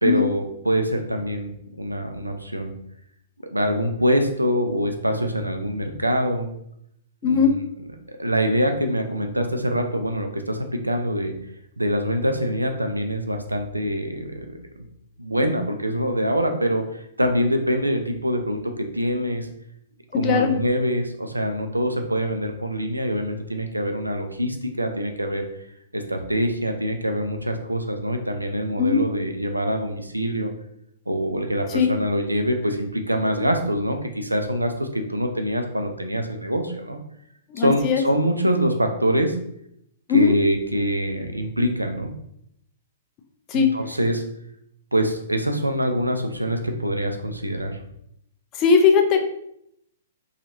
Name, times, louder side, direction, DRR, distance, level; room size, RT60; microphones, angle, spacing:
voice 1, 0.0-1.5 1.8-2.7 3.5-6.5 7.2-7.5 8.1-11.3 11.8-14.5 15.2-19.5 20.1-25.5 25.9-30.5 31.1-37.0 37.6-39.4 40.1-42.1 43.5-44.2 44.9-47.8, equal, 85° right, 5 dB, 0.4 m, -24 dB
voice 2, 7.2-7.5 20.1-20.5 28.8-29.0 31.7-31.9 37.5-38.0 40.1-40.3 43.5-43.7 48.5-49.2, left 6 dB, 30° left, 4 dB, 0.4 m, -19 dB
2.8 x 2.4 x 2.7 m, 0.75 s
figure-of-eight pair, 110°, 0 cm